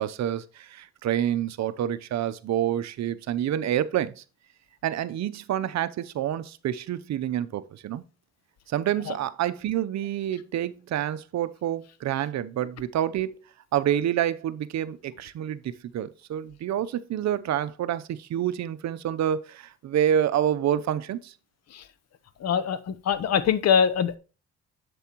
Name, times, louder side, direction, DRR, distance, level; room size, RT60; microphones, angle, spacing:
voice 1, 0.0-4.2 4.8-8.0 8.7-13.4 13.7-15.6 15.9-21.3, right 10 dB, 65° right, 0.7 m, -28 dB
voice 2, 22.4-24.2, left 7 dB, 55° left, 0.8 m, -23 dB
8.0 x 6.9 x 2.9 m
cardioid pair, 90°, 30 cm